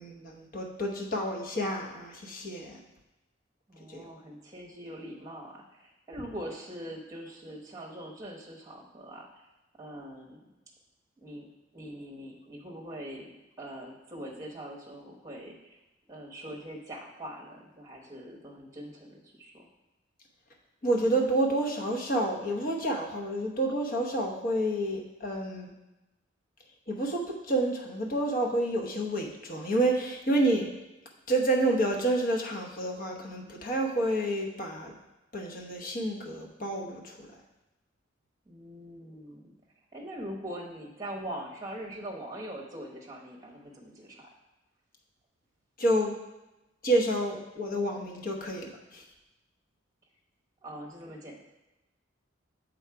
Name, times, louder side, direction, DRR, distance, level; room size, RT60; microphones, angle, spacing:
voice 1, 0.0-2.8 3.9-4.0 20.8-25.7 26.9-30.7 31.3-34.9 35.3-37.3 45.8-46.1 46.8-49.0, right 1 dB, 45° left, 0 dB, 1.0 m, -29 dB
voice 2, 3.7-9.3 9.8-10.4 11.2-11.5 11.7-13.3 13.6-15.8 16.1-19.7 38.5-39.5 39.9-44.3 50.6-51.4, right 1 dB, 15° right, -1 dB, 0.9 m, -42 dB
7.1 x 3.9 x 4.6 m, 0.99 s
head